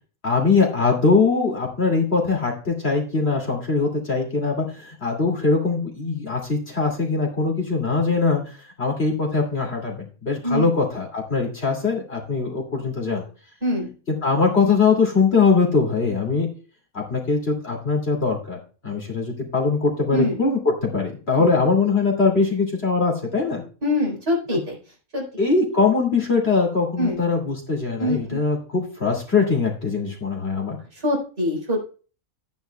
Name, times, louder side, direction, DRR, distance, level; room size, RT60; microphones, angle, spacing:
voice 1, 0.2-9.9 10.2-13.2 14.2-16.5 16.9-18.6 18.8-23.6 24.5-24.6 25.4-30.8, left 4 dB, 45° left, -1 dB, 2.8 m, -22 dB
voice 2, 13.6-13.9 20.1-20.4 21.4-21.5 23.8-24.8 25.1-25.3 27.0-27.2 28.0-28.4 30.9-31.8, left 1 dB, 45° right, -2 dB, 4.6 m, -24 dB
12.5 x 10.0 x 2.3 m, 0.37 s
omnidirectional pair, 1.5 m